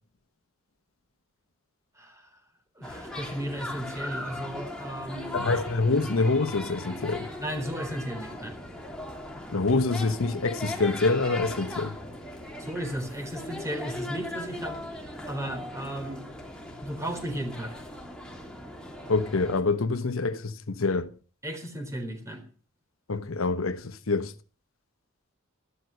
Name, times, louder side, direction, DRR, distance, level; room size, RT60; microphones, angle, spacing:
voice 1, 2.0-2.3 2.8-5.5 7.4-8.6 12.6-15.0 15.3-16.2 16.8-17.8 21.4-22.4, right 1 dB, 15° right, 4.0 m, -35 dB
sound 1, 2.8-19.6, left 1 dB, 5° left, 2.9 m, -38 dB
voice 2, 5.3-7.3 9.5-12.0 19.1-21.1 23.1-24.3, left 3 dB, 80° left, 1.0 m, -26 dB
14.0 x 12.5 x 6.5 m
head